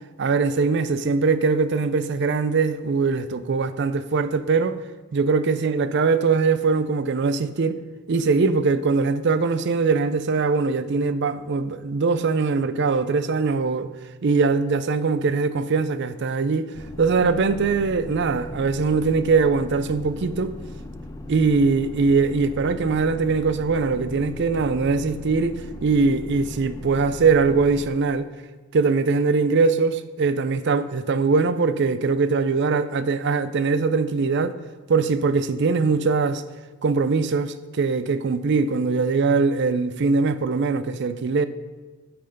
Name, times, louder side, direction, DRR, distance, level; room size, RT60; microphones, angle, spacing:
voice 1, 0.2-4.8 5.1-7.8 8.1-13.9 14.2-20.5 21.3-28.3 28.7-34.5 34.9-36.4 36.8-41.5, right 4 dB, 55° right, 0.5 m, -21 dB
sound 1, 16.7-27.9, left 2 dB, 15° left, 0.4 m, -38 dB
8.5 x 5.7 x 5.2 m
head